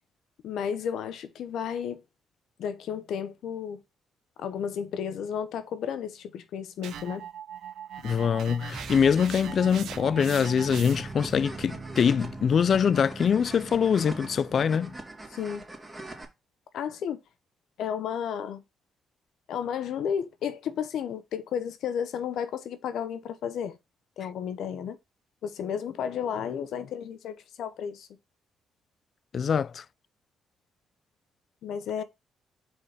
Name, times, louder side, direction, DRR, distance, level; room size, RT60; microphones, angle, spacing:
voice 1, 0.4-2.0 2.6-3.8 4.4-7.2 15.3-15.6 16.7-17.2 17.8-18.6 19.5-23.8 24.2-25.0 25.4-28.1 31.6-32.0, left 8 dB, 75° left, 0.8 m, -32 dB
sound 1, 6.8-11.2, right 9 dB, 75° right, 0.8 m, -41 dB
voice 2, 8.0-14.9 29.3-29.8, left 7 dB, 50° left, 0.3 m, -24 dB
sound 2, 8.7-15.1, right 3 dB, 25° right, 1.2 m, -42 dB
sound 3, 10.2-16.2, right 2 dB, 10° right, 2.8 m, -43 dB
4.9 x 4.5 x 5.8 m
cardioid pair, 90°, 0 cm